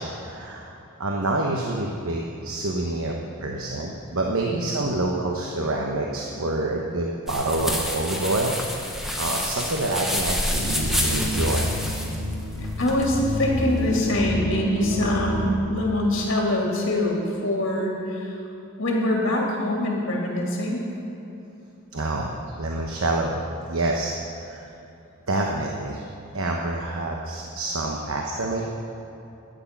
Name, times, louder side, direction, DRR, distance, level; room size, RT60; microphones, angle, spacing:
voice 1, 0.0-3.1 3.4-8.5 9.1-11.7 21.9-22.3 22.6-23.4 23.7-24.1 24.5-24.6 25.3-26.0 26.3-28.6, right 2 dB, 75° right, 0 dB, 1.1 m, -27 dB
sound 1, 7.3-14.1, left 1 dB, ahead, 1.1 m, -29 dB
sound 2, 10.5-15.6, equal, 60° right, 2.4 m, -28 dB
voice 2, 12.8-18.4 18.8-20.8, left 1 dB, 55° left, -1 dB, 2.4 m, -24 dB
13.0 x 9.7 x 5.9 m, 2.9 s
head